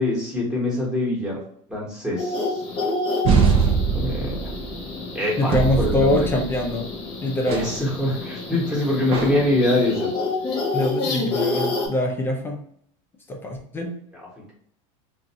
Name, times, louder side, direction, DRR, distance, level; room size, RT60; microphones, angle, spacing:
voice 1, 0.0-1.4 1.7-2.6 3.9-4.5 5.1-6.3 7.4-10.1, left 1 dB, 5° right, -5 dB, 1.1 m, -24 dB
sound 1, 2.2-11.9, left 3 dB, 30° left, 0.9 m, -29 dB
sound 2, 3.2-4.9 5.5-6.7 7.5-7.8 9.1-9.6, right 5 dB, 35° right, 0.5 m, -22 dB
voice 2, 5.4-6.9 7.2-7.7 10.7-12.6 13.3-13.9, left 1 dB, 15° left, 1 dB, 0.6 m, -24 dB
2.6 x 2.5 x 4.1 m, 0.65 s
supercardioid pair, 150°, 17 cm